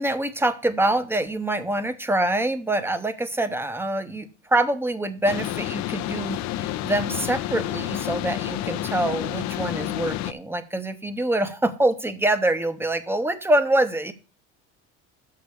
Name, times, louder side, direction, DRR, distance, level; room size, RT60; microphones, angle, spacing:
voice 1, 0.0-14.1, right 1 dB, 5° right, 11 dB, 0.7 m, -25 dB
sound 1, 5.3-10.3, left 14 dB, 60° left, 0.6 m, -29 dB
6.7 x 5.9 x 6.8 m, 0.36 s
cardioid pair, 120°, 31 cm